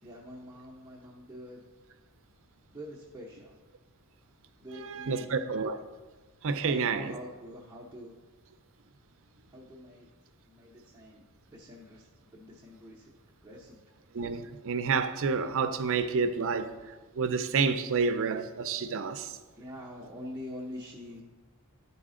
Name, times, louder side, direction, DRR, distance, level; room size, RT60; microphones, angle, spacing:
voice 1, 0.0-1.6 2.7-3.6 4.6-5.3 6.6-8.1 9.5-10.1 10.4-13.1 13.4-13.8 19.6-21.2, equal, 15° right, -5 dB, 0.7 m, -45 dB
voice 2, 4.8-5.8 6.4-7.2 14.1-16.7 17.2-19.4, right 5 dB, 60° right, 10 dB, 0.5 m, -29 dB
10.5 x 4.1 x 3.7 m, 1.3 s
head